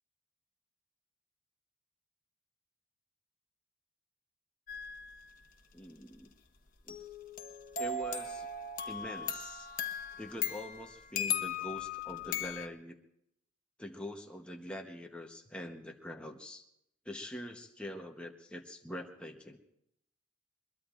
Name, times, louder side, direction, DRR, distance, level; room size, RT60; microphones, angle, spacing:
sound 1, 4.7-5.1 6.9-12.7, left 6 dB, 40° left, 1.1 m, -38 dB
voice 1, 5.7-6.3 6.8-7.0 7.8-8.5 8.9-9.7 10.2-12.9 13.8-16.6 17.0-19.6, left 1 dB, 5° left, 2 dB, 0.9 m, -44 dB
22.0 x 22.0 x 2.5 m, 0.79 s
head